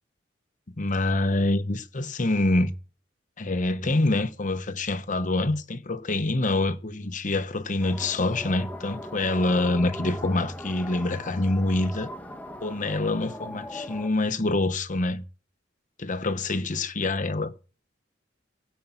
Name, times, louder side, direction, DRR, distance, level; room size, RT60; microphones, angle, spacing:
voice 1, 0.8-2.7 3.4-12.1 12.6-15.2 16.0-17.5, left 2 dB, 45° left, 1.0 m, -26 dB
sound 1, 7.8-14.1, left 1 dB, 10° left, 1.4 m, -39 dB
16.5 x 5.6 x 7.2 m
head